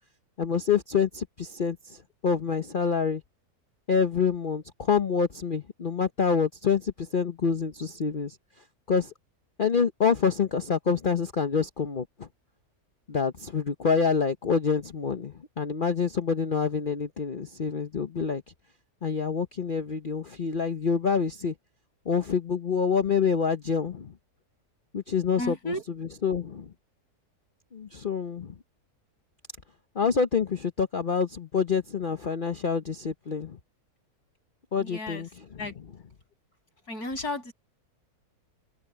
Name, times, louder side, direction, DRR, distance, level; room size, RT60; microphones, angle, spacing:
voice 1, 0.4-3.2 3.9-8.4 8.9-9.1 9.6-12.3 13.1-18.4 19.0-21.5 22.1-24.1 24.9-26.7 27.7-28.5 29.9-33.6 34.7-35.7, left 6 dB, 40° left, 1.0 m, -27 dB
voice 2, 25.4-25.8 34.8-35.2 35.6-35.7 36.9-37.5, left 1 dB, 75° left, 8.1 m, -33 dB
open air
omnidirectional pair, 1.6 m